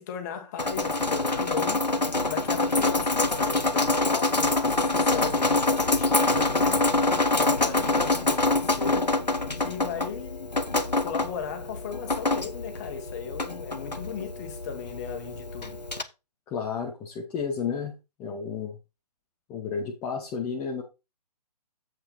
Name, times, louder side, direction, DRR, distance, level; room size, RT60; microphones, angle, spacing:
voice 1, 0.0-1.9 2.3-6.9 7.3-9.1 9.4-10.5 11.0-15.8, left 7 dB, 25° left, 1.4 m, -37 dB
Drip, 0.6-16.0, left 2 dB, 90° left, 0.8 m, -26 dB
voice 2, 16.5-17.9 18.2-18.8 19.5-20.8, left 6 dB, 10° left, 0.5 m, -32 dB
7.6 x 5.6 x 4.0 m
figure-of-eight pair, 135°, 21 cm